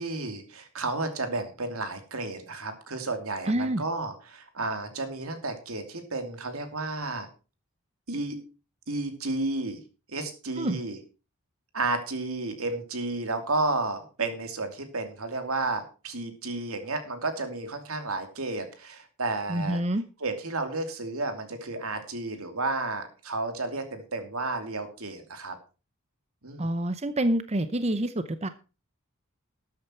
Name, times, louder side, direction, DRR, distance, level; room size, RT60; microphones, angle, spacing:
voice 1, 0.0-7.3 8.1-8.4 8.9-9.8 10.1-11.0 11.7-19.8 20.2-25.6 26.4-26.7, right 2 dB, 85° right, 7 dB, 2.7 m, -32 dB
voice 2, 3.5-3.8 10.6-10.8 19.5-20.0 26.6-28.5, right 1 dB, 30° right, 11 dB, 0.7 m, -27 dB
13.0 x 8.8 x 4.5 m, 0.33 s
head